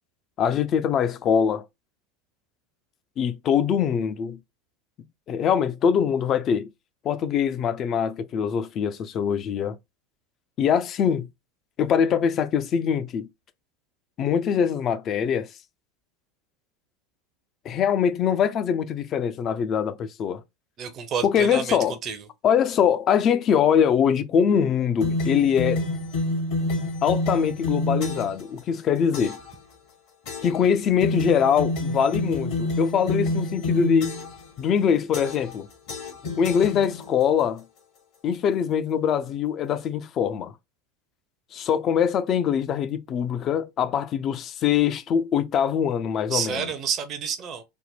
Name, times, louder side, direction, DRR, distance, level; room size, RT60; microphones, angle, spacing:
voice 1, 0.4-1.6 3.2-4.4 5.3-6.7 7.0-9.8 10.6-11.3 11.8-13.3 14.2-15.5 17.6-20.4 21.2-22.0 22.4-25.8 27.0-29.4 30.4-34.1 34.6-35.7 36.4-37.6 38.2-40.5 41.5-46.7, left 8 dB, 40° left, 0.5 m, -23 dB
voice 2, 20.8-21.8 22.0-22.2 46.3-47.6, right 7 dB, 35° right, 0.6 m, -29 dB
sound 1, 25.0-28.4 29.1-29.5 30.3-30.7 31.0-34.5 35.1-35.6 35.9-37.2, left 2 dB, 55° left, 1.1 m, -28 dB
3.4 x 2.1 x 4.1 m
figure-of-eight pair, 80°, 0 cm